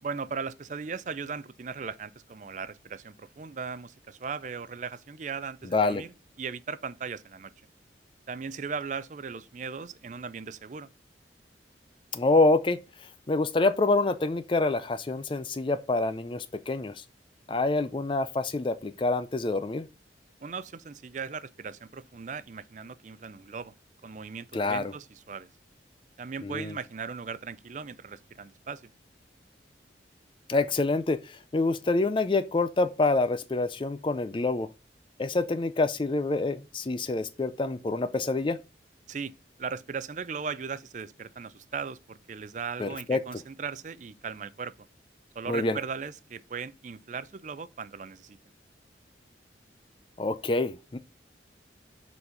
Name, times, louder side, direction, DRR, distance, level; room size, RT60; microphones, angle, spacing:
voice 1, 0.0-6.1 6.4-7.5 8.3-10.9 20.4-23.7 24.0-25.5 26.2-28.9 39.1-39.3 39.6-44.7 45.4-48.4, right 5 dB, 45° right, 0.4 m, -38 dB
voice 2, 5.7-6.0 12.1-17.0 17.5-19.9 24.5-24.9 26.4-26.8 30.5-34.7 35.2-38.6 42.8-43.2 45.5-45.8 50.2-51.0, left 3 dB, 30° left, 0.4 m, -27 dB
7.0 x 4.1 x 4.9 m
head